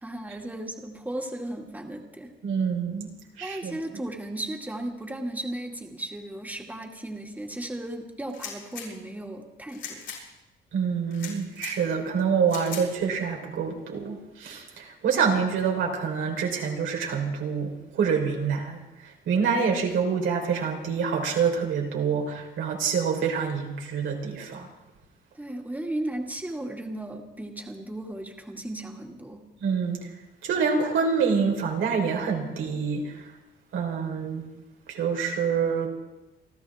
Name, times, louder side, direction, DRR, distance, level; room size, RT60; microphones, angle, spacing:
voice 1, 0.0-2.3 3.4-10.0 25.3-29.4, right 1 dB, 10° right, 1 dB, 2.3 m, -35 dB
voice 2, 2.4-3.1 3.4-3.8 10.7-24.7 29.6-30.0 30.4-33.2 33.7-34.4 34.9-35.9, right 6 dB, 80° right, 1 dB, 3.9 m, -26 dB
sound 1, 8.3-8.9 9.7-10.2 11.1-11.7 12.5-12.8, left 7 dB, 75° left, 7.1 m, -38 dB
29.0 x 12.5 x 3.6 m, 1.0 s
cardioid pair, 90°, 20 cm